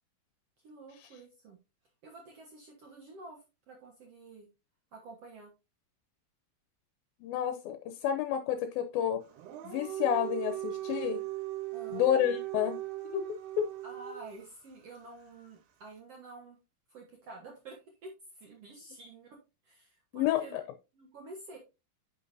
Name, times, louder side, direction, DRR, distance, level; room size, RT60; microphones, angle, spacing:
voice 1, 0.6-1.6 2.0-4.5 4.9-5.5 11.7-12.0 13.8-16.6 16.9-19.4 19.6-20.6 20.9-21.6, right 2 dB, 65° right, 1.5 m, -49 dB
voice 2, 7.2-9.2 9.6-11.2 11.9-12.8 13.1-13.3 13.6-13.7 20.1-20.6, left 10 dB, 75° left, 2.3 m, -30 dB
Dog, 9.3-14.5, right 16 dB, 85° right, 3.1 m, -38 dB
9.6 x 5.8 x 2.6 m
omnidirectional pair, 4.6 m